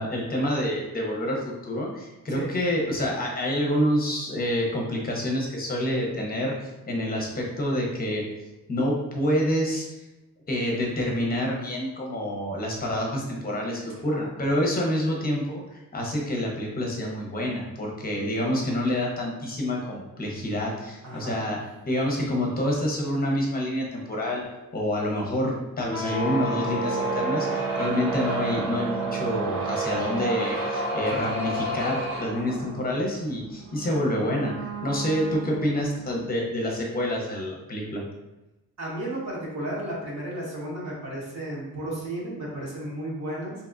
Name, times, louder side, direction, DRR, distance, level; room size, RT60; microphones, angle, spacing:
voice 1, 0.0-8.2 8.7-10.0 10.5-21.6 21.9-24.4 24.7-38.0, equal, 25° left, -1 dB, 0.8 m, -27 dB
voice 2, 21.0-21.4 38.8-43.5, right 1 dB, 50° right, -5 dB, 1.2 m, -33 dB
sound 1, 25.8-36.1, right 2 dB, 80° right, 1.2 m, -30 dB
3.4 x 2.8 x 2.5 m, 1.0 s
cardioid pair, 135°, 34 cm